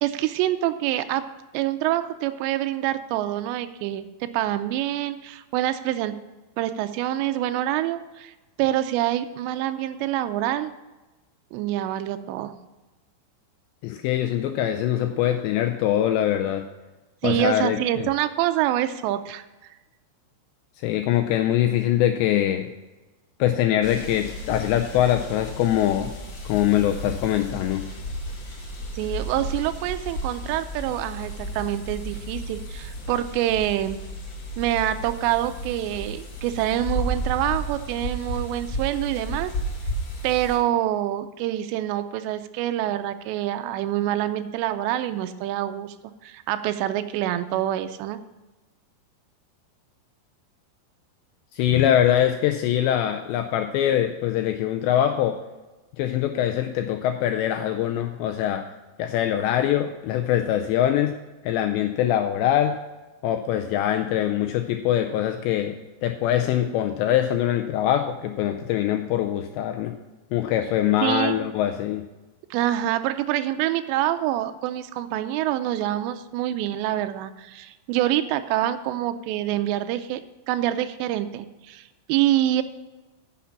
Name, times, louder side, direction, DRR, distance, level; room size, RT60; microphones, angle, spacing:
voice 1, 0.0-1.2 1.5-6.1 6.6-10.7 11.5-12.5 15.2-15.3 15.9-16.0 17.2-19.8 28.9-34.0 34.6-39.5 40.2-46.0 46.2-48.2 71.0-71.4 72.5-80.2 80.5-82.6, right 13 dB, 90° right, 9 dB, 2.5 m, -26 dB
voice 2, 13.8-16.6 17.2-18.1 20.8-22.7 23.4-26.1 26.5-27.8 51.5-55.4 56.0-58.6 59.0-61.1 61.4-62.8 63.2-65.8 66.0-69.9 70.3-72.0, left 11 dB, 85° left, 5 dB, 2.5 m, -23 dB
sound 1, 23.8-40.6, right 1 dB, 55° left, 1.9 m, -33 dB
10.0 x 7.2 x 5.8 m, 1.1 s
omnidirectional pair, 5.6 m